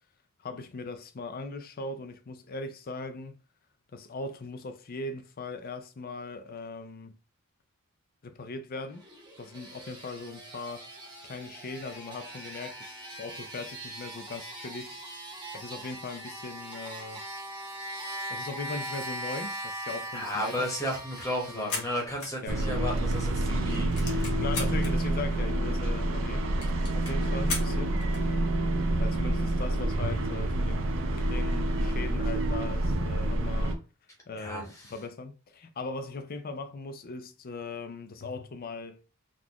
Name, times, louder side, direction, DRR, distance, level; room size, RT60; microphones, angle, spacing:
voice 1, 0.4-3.4 3.9-7.2 8.2-9.0 9.4-10.9 11.2-15.0 15.5-17.2 18.3-20.7 21.5-21.9 22.4-22.9 24.4-26.5 26.9-28.0 29.0-33.8 34.3-39.0, left 3 dB, 40° left, 0.4 m, -39 dB
sound 1, 8.8-22.1, right 1 dB, 20° right, 1.2 m, -41 dB
voice 2, 20.1-24.4 34.4-34.9, equal, 15° left, 1.1 m, -34 dB
sound 2, 20.4-23.0 23.3-23.4 23.7-24.9 25.5-25.6 25.8-25.9 26.2-26.3 26.6-28.3, left 3 dB, 85° left, 1.4 m, -38 dB
sound 3, 22.5-33.7, right 1 dB, 60° right, 0.5 m, -28 dB
3.9 x 2.4 x 2.9 m
head